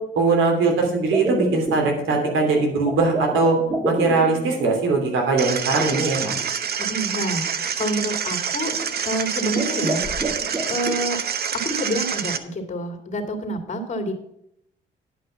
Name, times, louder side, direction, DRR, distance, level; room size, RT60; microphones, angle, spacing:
voice 1, 0.2-3.6 3.8-6.4, right 3 dB, 80° right, 1 dB, 3.1 m, -20 dB
sound 1, 1.1-4.6 5.8-6.5 7.1-7.2 7.8-8.1 8.7-9.0 9.4-11.0, right 2 dB, 20° right, 2.7 m, -29 dB
sound 2, 5.4-12.4, right 7 dB, 50° right, 0.9 m, -27 dB
voice 2, 6.8-7.5 7.8-8.7 9.0-10.0 10.7-11.2 11.5-14.1, right 1 dB, 35° left, 5 dB, 2.5 m, -27 dB
10.5 x 5.7 x 7.0 m, 0.76 s
cardioid pair, 90°, 20 cm